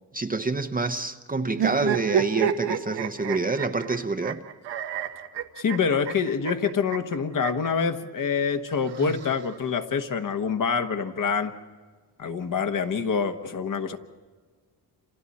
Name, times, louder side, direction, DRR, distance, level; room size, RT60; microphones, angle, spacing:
voice 1, 0.1-4.4, right 3 dB, 20° right, 0.7 m, -27 dB
sound 1, 1.5-7.7 8.7-9.8, right 8 dB, 90° right, 1.3 m, -30 dB
voice 2, 5.6-11.5 12.2-14.0, left 6 dB, 50° left, 1.2 m, -26 dB
29.5 x 27.0 x 4.2 m
cardioid pair, 110°, 42 cm